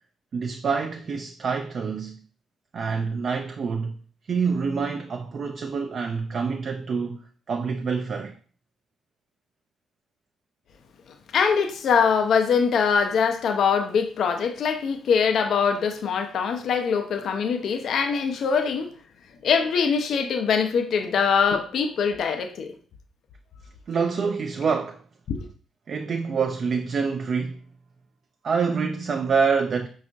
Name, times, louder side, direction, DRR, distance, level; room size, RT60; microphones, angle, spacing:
voice 1, 0.3-2.2 2.7-4.0 4.3-8.3 23.9-25.0 25.9-27.6 28.4-29.9, right 5 dB, 50° right, 0.3 m, -26 dB
voice 2, 11.3-18.9 19.4-22.7 25.3-25.5, left 6 dB, 60° left, 0.4 m, -23 dB
4.9 x 2.3 x 2.5 m
hypercardioid pair, 40°, 0 cm